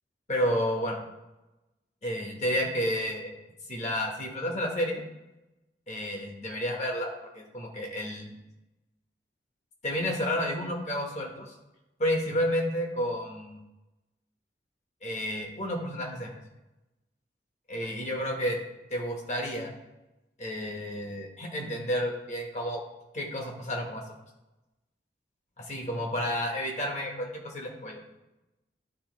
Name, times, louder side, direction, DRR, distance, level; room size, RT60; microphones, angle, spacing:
voice 1, 0.3-1.0 2.0-3.3 3.7-5.0 5.9-8.3 9.8-11.5 12.0-13.6 15.0-16.3 17.7-18.6 18.9-19.7 20.4-22.8 23.1-24.0 25.6-28.0, equal, 40° left, 1 dB, 1.2 m, -31 dB
11.5 x 4.3 x 3.1 m, 1.0 s
head